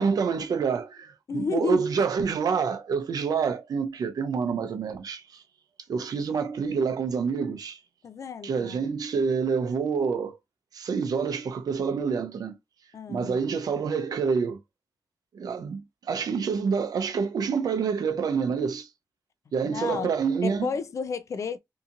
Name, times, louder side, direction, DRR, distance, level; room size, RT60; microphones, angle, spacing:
voice 1, 0.0-5.4 5.9-7.8 8.4-10.4 10.7-12.5 13.1-14.6 15.3-18.9 19.5-20.7, right 5 dB, 75° right, 0.5 m, -27 dB
voice 2, 1.3-1.9 8.0-8.9 12.9-13.4 19.6-20.1 20.4-21.6, left 5 dB, 50° left, 0.3 m, -31 dB
2.7 x 2.5 x 2.6 m
wide cardioid pair, 130°, 7 cm